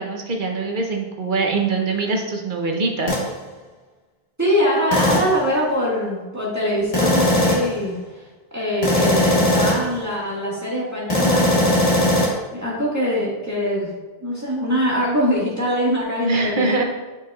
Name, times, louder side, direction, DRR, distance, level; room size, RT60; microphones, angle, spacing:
voice 1, 0.0-3.2 16.2-16.8, right 3 dB, 55° right, 2 dB, 1.0 m, -23 dB
sound 1, 3.1-3.3 4.9-5.4 6.9-7.8 8.8-9.9 11.1-12.3, left 1 dB, 35° left, 1.3 m, -18 dB
voice 2, 4.4-8.2 8.5-12.0 12.5-13.9 14.2-16.7, equal, 15° right, -8 dB, 1.7 m, -23 dB
9.2 x 4.5 x 2.4 m, 1.2 s
omnidirectional pair, 1.0 m